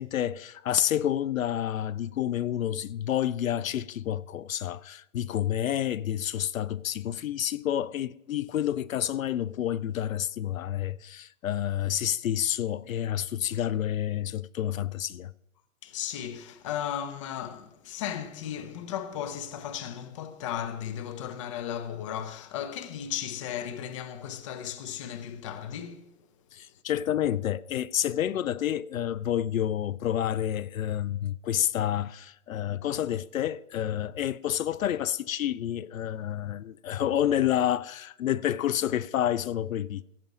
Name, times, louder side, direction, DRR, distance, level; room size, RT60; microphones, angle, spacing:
voice 1, 0.0-15.3 26.5-40.0, left 11 dB, 80° left, 0.6 m, -29 dB
voice 2, 15.8-26.1, left 9 dB, 25° left, 0.6 m, -35 dB
15.0 x 5.3 x 6.0 m
hypercardioid pair, 145°, 40 cm